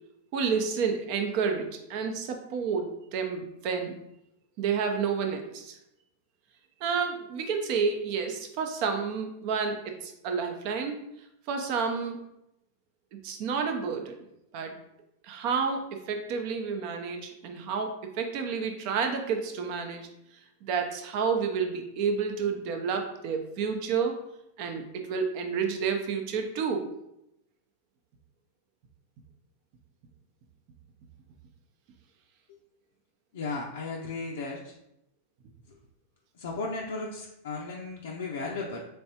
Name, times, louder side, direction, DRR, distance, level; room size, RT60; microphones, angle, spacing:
voice 1, 0.3-4.0 4.6-5.8 6.8-11.0 11.5-12.2 13.1-14.2 14.5-14.8 15.2-20.1 20.6-24.2 24.6-26.9, right 5 dB, 50° right, 4 dB, 0.6 m, -30 dB
voice 2, 33.3-34.7 35.7-35.8 36.4-38.8, left 3 dB, 80° left, -2 dB, 0.5 m, -35 dB
3.4 x 3.2 x 2.8 m, 0.83 s
hypercardioid pair, 125°, 0 cm